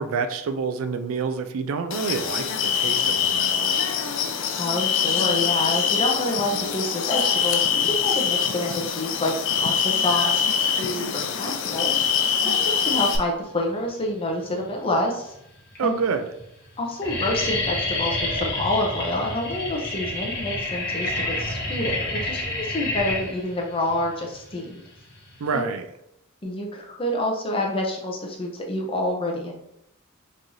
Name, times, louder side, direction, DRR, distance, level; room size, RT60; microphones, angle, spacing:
voice 1, 0.0-3.8 15.8-16.2 25.4-25.9, right 5 dB, 80° right, 8 dB, 0.4 m, -28 dB
sound 1, 1.9-13.2, left 7 dB, 60° left, 0.4 m, -24 dB
voice 2, 4.5-12.1 12.4-15.3 15.8-16.0 16.8-24.8 25.5-25.6 26.4-29.6, left 1 dB, 25° left, 0 dB, 0.6 m, -28 dB
sound 2, 14.4-15.0 15.7-15.8 16.0-16.4 16.7-25.6, left 2 dB, 45° left, 1.0 m, -29 dB
3.1 x 2.6 x 3.8 m, 0.80 s
head